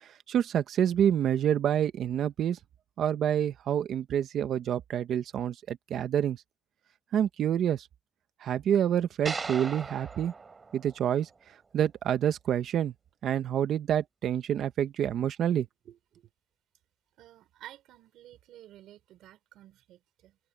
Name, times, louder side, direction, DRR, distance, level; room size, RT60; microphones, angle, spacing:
voice 1, 0.3-2.6 3.0-6.4 7.1-7.9 8.4-10.3 10.7-11.3 11.7-12.9 13.2-15.7, right 9 dB, 70° right, 1.5 m, -27 dB
sound 1, 9.3-11.6, right 4 dB, 35° right, 4.3 m, -39 dB
voice 2, 17.2-20.4, right 13 dB, 85° right, 5.5 m, -52 dB
cardioid pair, 90°, 0 cm